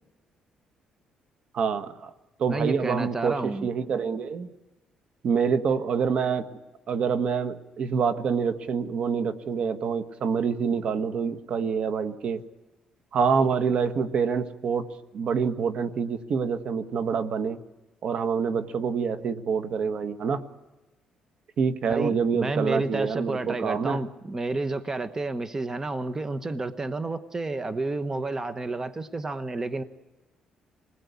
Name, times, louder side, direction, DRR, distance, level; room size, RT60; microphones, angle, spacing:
voice 1, 1.5-2.1 2.4-4.5 5.2-6.5 6.9-12.4 13.1-14.9 15.1-17.6 18.0-20.4 21.6-24.0, right 6 dB, 60° right, 1.6 m, -26 dB
voice 2, 2.5-3.7 21.9-29.8, right 2 dB, 25° right, 1.3 m, -30 dB
27.5 x 20.5 x 8.5 m
cardioid pair, 95°, 2 cm